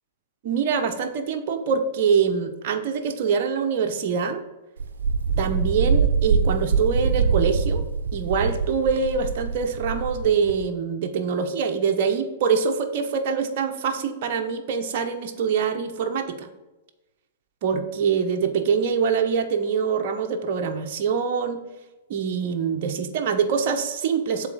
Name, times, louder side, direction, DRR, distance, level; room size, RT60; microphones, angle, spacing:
voice 1, 0.4-4.4 5.4-7.8 8.1-16.5 17.6-21.6 22.1-24.5, right 6 dB, 55° right, 4 dB, 0.9 m, -24 dB
Wind, 4.8-10.7, right 5 dB, 75° right, 0.7 m, -24 dB
7.4 x 4.2 x 6.2 m, 1.1 s
hypercardioid pair, 115°, 0 cm